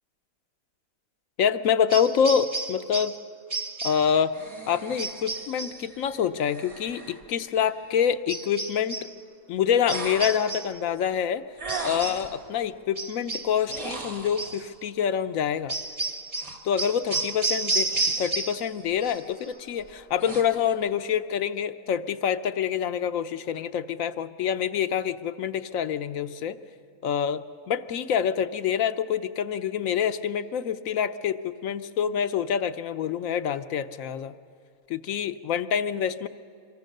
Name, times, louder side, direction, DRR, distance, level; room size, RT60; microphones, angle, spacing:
voice 1, 1.4-3.2 3.8-4.3 4.7-9.1 9.5-11.4 11.8-15.8 16.7-17.9 18.2-26.6 27.0-34.3 34.9-36.3, left 8 dB, 75° left, 11 dB, 1.1 m, -26 dB
sound 1, 1.9-3.2 3.5-4.1 5.0-5.8 8.3-9.1 9.9-10.8 11.7-12.3 13.0-14.0 14.4-14.6 15.7-18.7 19.0-19.5, right 3 dB, 30° right, 0.6 m, -31 dB
sound 2, 3.8-8.1 9.8-10.6 11.6-12.4 13.6-14.7 16.3-18.4 18.8-19.2 19.7-20.8, right 3 dB, 90° right, 2.8 m, -40 dB
25.5 x 24.0 x 6.5 m, 2.3 s
omnidirectional pair, 1.4 m